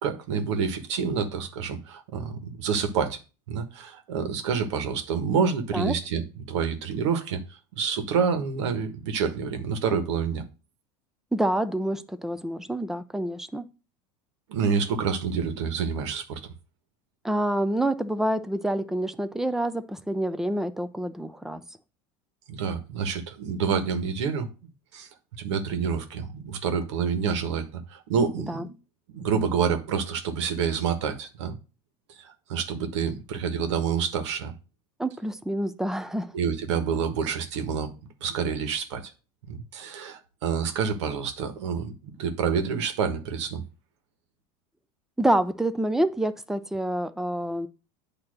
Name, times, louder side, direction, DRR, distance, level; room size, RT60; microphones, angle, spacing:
voice 1, 0.0-3.2 3.5-10.4 14.5-16.4 22.5-24.5 24.9-25.1 25.4-28.7 29.1-31.6 32.2-34.5 36.3-37.9 38.2-39.0 39.5-43.6, right 6 dB, 85° right, 1.3 m, -28 dB
voice 2, 11.3-13.7 17.2-21.6 28.5-28.7 35.0-36.3 45.2-47.7, right 1 dB, 5° right, 0.5 m, -27 dB
8.6 x 2.9 x 6.4 m
supercardioid pair, 135°, 14 cm